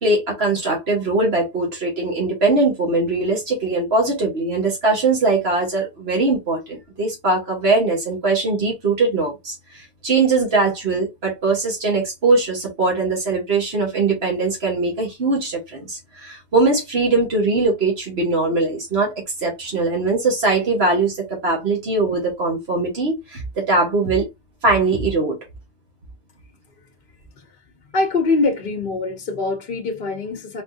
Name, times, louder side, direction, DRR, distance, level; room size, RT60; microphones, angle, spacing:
voice 1, 0.0-24.3 24.6-25.4, right 3 dB, 80° right, 1.7 m, -21 dB
voice 2, 27.9-30.6, left 3 dB, 60° left, 0.9 m, -23 dB
4.3 x 3.3 x 2.7 m
omnidirectional pair, 1.0 m